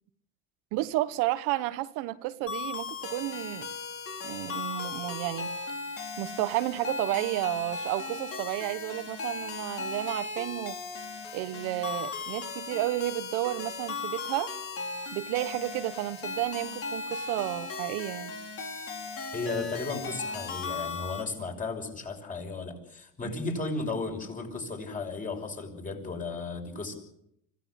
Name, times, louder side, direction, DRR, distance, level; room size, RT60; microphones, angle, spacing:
voice 1, 0.7-3.7 4.2-5.5 6.2-10.8 11.3-14.5 15.1-18.3 23.2-23.3, right 17 dB, 75° right, 1.3 m, -32 dB
sound 1, 2.5-21.2, left 4 dB, 45° left, 5.2 m, -37 dB
voice 2, 19.3-26.9, left 3 dB, 25° left, 6.3 m, -35 dB
25.5 x 16.5 x 8.5 m
cardioid pair, 125°, 31 cm